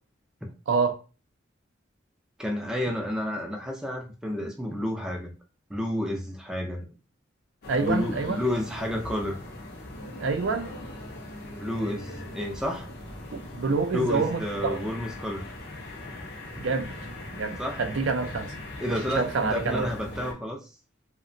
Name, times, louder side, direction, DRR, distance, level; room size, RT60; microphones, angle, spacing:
voice 1, 0.7-1.0 7.7-8.4 10.2-10.7 13.3-14.8 16.6-16.9 17.3-18.5 18.9-19.9, right 4 dB, 70° right, 0.4 m, -27 dB
voice 2, 2.4-5.3 5.7-6.9 7.8-9.4 11.6-12.9 13.9-15.4 17.6-17.8 18.8-20.6, left 1 dB, 5° right, 0.3 m, -30 dB
indoor apartments hall noise, 7.6-20.3, left 1 dB, 50° left, 0.5 m, -40 dB
2.7 x 2.1 x 2.5 m
head